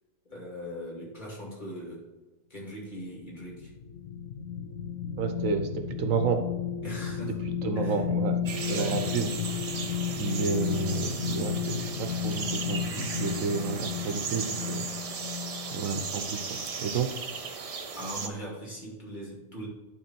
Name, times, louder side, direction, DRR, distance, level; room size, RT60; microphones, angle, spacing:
voice 1, 0.3-2.1 2.5-3.7 6.8-7.4 7.7-8.0 8.6-9.0 17.9-19.7, equal, 35° left, -3 dB, 2.8 m, -40 dB
sound 1, 3.2-16.1 16.5-16.7, left 7 dB, 80° left, 1.1 m, -33 dB
voice 2, 5.2-6.4 7.6-8.4 8.7-9.3 10.2-14.9 15.7-17.1, right 5 dB, 80° right, 6 dB, 1.2 m, -31 dB
sound 2, 8.5-18.3, right 5 dB, 45° right, 0.4 m, -36 dB
11.5 x 3.9 x 4.5 m, 1.2 s
omnidirectional pair, 1.4 m